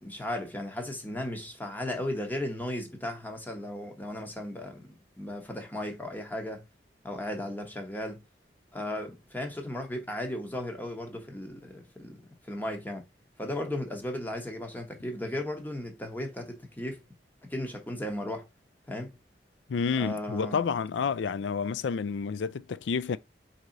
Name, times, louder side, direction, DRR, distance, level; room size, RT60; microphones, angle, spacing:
voice 1, 0.0-6.6 7.0-8.2 8.7-13.0 13.4-17.0 17.5-18.5 18.9-19.1 20.0-20.6, left 1 dB, 10° left, 0.9 m, -36 dB
voice 2, 19.7-23.2, left 6 dB, 90° left, 0.4 m, -29 dB
4.7 x 2.8 x 3.8 m
head